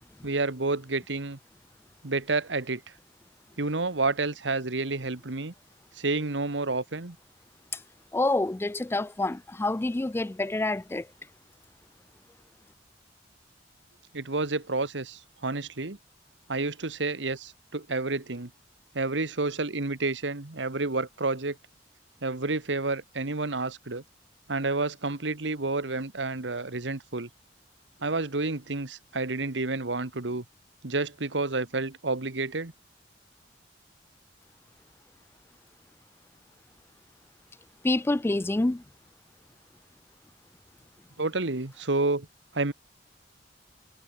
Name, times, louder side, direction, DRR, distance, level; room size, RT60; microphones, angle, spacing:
voice 1, 0.2-1.4 2.0-2.8 3.6-5.5 6.0-7.2 14.1-16.0 16.5-18.5 18.9-21.6 22.2-24.0 24.5-27.3 28.0-30.4 30.8-32.7 41.2-42.3 42.5-42.7, right 3 dB, 85° right, 1.6 m, -29 dB
voice 2, 8.1-11.1 37.8-38.8, left 2 dB, 15° left, 0.4 m, -27 dB
head